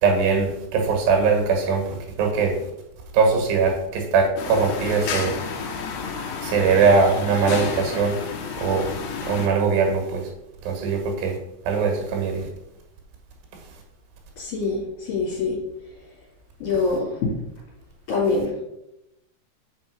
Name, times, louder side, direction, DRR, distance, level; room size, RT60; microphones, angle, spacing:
voice 1, 0.0-2.6 3.1-5.4 6.4-8.2 8.6-8.9 9.2-10.3 10.6-11.4 11.7-12.5, right 5 dB, 80° right, 3 dB, 4.0 m, -21 dB
sound 1, 4.4-9.5, left 5 dB, 70° left, 2.9 m, -31 dB
voice 2, 14.4-15.6 16.6-17.3 18.1-18.6, left 3 dB, 55° left, -9 dB, 4.3 m, -24 dB
7.7 x 5.2 x 6.7 m, 0.88 s
omnidirectional pair, 4.8 m